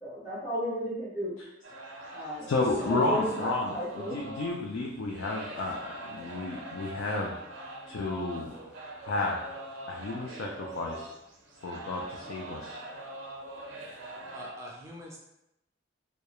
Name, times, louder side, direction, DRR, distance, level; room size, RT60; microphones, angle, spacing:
voice 1, 0.0-1.3 2.1-2.5 2.9-4.1, equal, 25° left, -10 dB, 0.8 m, -34 dB
sound 1, 1.6-14.5, right 2 dB, 70° right, 0.5 m, -43 dB
voice 2, 2.5-7.3 7.9-8.5 9.1-9.4 9.9-11.1 11.6-12.8, left 2 dB, 80° left, -1 dB, 0.3 m, -31 dB
voice 3, 14.3-15.2, equal, 15° right, -3 dB, 0.3 m, -44 dB
2.2 x 2.0 x 2.9 m, 0.85 s
head